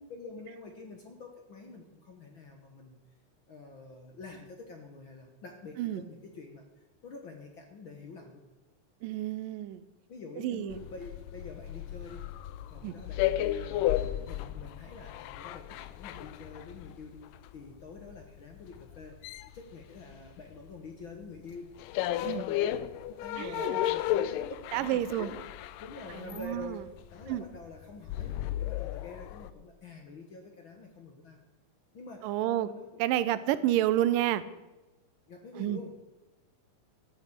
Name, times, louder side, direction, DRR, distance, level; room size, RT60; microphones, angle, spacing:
voice 1, 0.1-3.0 3.5-6.6 7.0-8.4 10.1-12.3 12.7-19.2 19.5-22.8 23.1-25.4 25.8-28.3 28.6-31.4 31.9-33.0 33.3-33.5 35.3-36.0, left 3 dB, 55° left, 3 dB, 1.5 m, -47 dB
voice 2, 9.0-9.9 10.4-10.8 12.8-12.9 22.2-22.5 23.4-23.8 24.7-25.3 26.2-26.8 27.3-27.5 32.2-32.7 33.0-34.4 35.6-35.8, right 13 dB, 90° right, 14 dB, 2.4 m, -29 dB
sound 1, 10.7-20.7 21.0-29.5, left 13 dB, 85° left, 2.3 m, -34 dB
13.5 x 8.2 x 8.4 m, 1.1 s
omnidirectional pair, 3.8 m